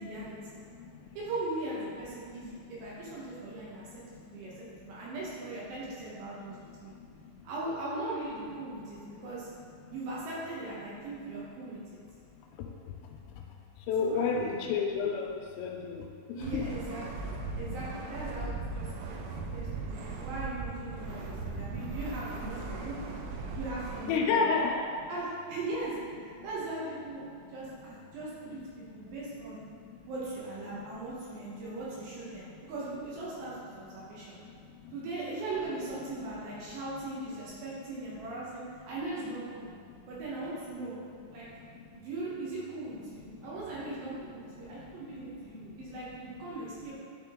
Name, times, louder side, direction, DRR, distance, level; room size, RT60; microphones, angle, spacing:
voice 1, 0.0-0.6 1.1-6.9 7.4-9.5 9.9-11.8 14.0-14.5 16.3-23.0 23.5-24.5 25.1-26.0 26.2-29.6 30.1-34.4 34.9-39.7 40.1-40.9 41.3-41.5 41.9-47.0, right 2 dB, 70° right, -7 dB, 3.0 m, -39 dB
voice 2, 0.6-1.1 2.8-3.1 4.0-5.0 6.3-7.5 8.7-8.8 9.1-9.3 9.8-9.9 12.4-12.8 13.0-13.4 13.9-16.6 17.4-17.6 18.7-20.3 21.2-21.9 23.4-23.6 24.1-25.1 26.4-26.5 27.4-27.5 29.7-30.0 32.4-32.6 33.9-35.0 37.4-37.5 39.9-40.0 41.4-41.9 43.3-43.6 44.6-46.0, left 5 dB, 80° left, 1 dB, 2.8 m, -35 dB
sound 1, 16.4-24.1, right 3 dB, 90° right, 3.2 m, -38 dB
10.5 x 3.7 x 3.7 m, 2.4 s
omnidirectional pair, 5.5 m